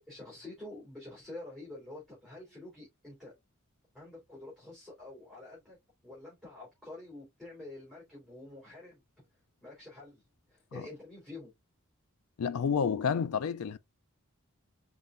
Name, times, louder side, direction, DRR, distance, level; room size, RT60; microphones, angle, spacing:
voice 1, 0.1-3.3 3.9-5.8 6.0-9.0 9.6-10.2 10.5-11.5, left 2 dB, ahead, 3.2 m, -47 dB
voice 2, 12.4-13.8, left 6 dB, 90° left, 0.4 m, -29 dB
5.4 x 3.8 x 2.5 m
head